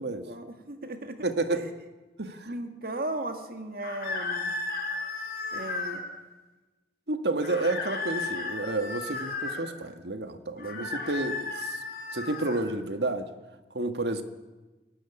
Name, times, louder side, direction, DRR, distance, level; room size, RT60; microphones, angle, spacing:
voice 1, 0.2-1.7 2.5-4.5 5.5-6.0 8.3-8.4 10.7-10.9, right 1 dB, 55° right, 7 dB, 1.9 m, -37 dB
voice 2, 1.2-1.7 2.2-2.5 7.1-11.8 12.1-13.3 13.7-14.2, right 2 dB, 75° right, 8 dB, 1.6 m, -30 dB
sound 1, 3.8-6.0 7.4-9.6 10.6-12.6, left 3 dB, 55° left, 4.5 m, -34 dB
21.5 x 13.0 x 9.9 m, 1.2 s
head